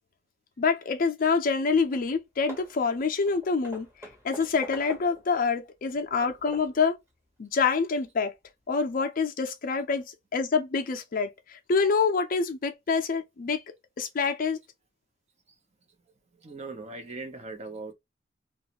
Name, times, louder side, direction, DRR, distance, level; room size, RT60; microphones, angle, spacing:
voice 1, 0.6-3.9 4.2-6.9 7.4-8.3 8.7-13.6 14.0-14.6, left 5 dB, 50° left, 0.4 m, -26 dB
Hammer / Wood, 1.9-2.1 2.5-5.3 5.8-6.8, equal, 15° right, 1.0 m, -45 dB
voice 2, 16.4-17.9, right 3 dB, 35° right, 0.6 m, -39 dB
2.5 x 2.3 x 2.8 m
head